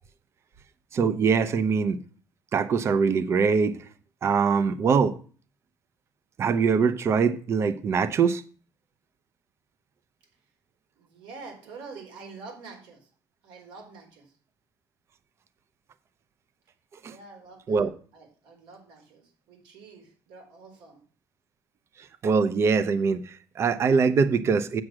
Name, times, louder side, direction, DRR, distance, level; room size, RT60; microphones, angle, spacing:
voice 1, 0.9-2.0 2.5-3.8 4.2-5.1 6.4-8.4 17.0-17.1 17.7-17.9 22.2-24.8, right 5 dB, 35° right, 0.7 m, -23 dB
voice 2, 11.0-13.1 13.4-14.3 17.1-21.0, right 4 dB, 80° right, 4.1 m, -46 dB
8.1 x 7.6 x 6.1 m
cardioid pair, 160°, 8 cm